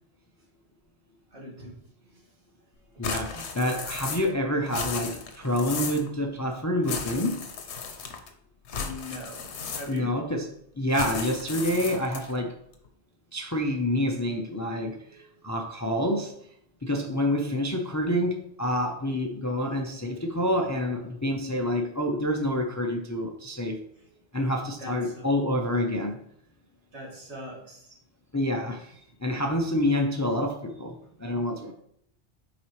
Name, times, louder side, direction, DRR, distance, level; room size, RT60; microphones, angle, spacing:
voice 1, 1.3-1.7 2.1-2.2 2.9-3.1 8.7-10.2 15.1-15.4 24.0-24.1 24.8-25.3 26.9-28.0, left 1 dB, 85° right, -3 dB, 2.2 m, -42 dB
sound 1, 3.0-4.4 4.6-6.1 6.8-8.3 8.7-10.2 10.9-12.4, left 5 dB, 85° left, 1.1 m, -35 dB
voice 2, 3.0-7.4 9.9-10.4 10.8-12.5 13.3-15.0 15.4-16.3 16.8-23.8 24.3-26.2 28.3-28.9 29.2-30.9 31.2-31.7, left 1 dB, 25° left, 2 dB, 0.4 m, -27 dB
7.1 x 4.8 x 3.2 m, 0.70 s
omnidirectional pair, 1.1 m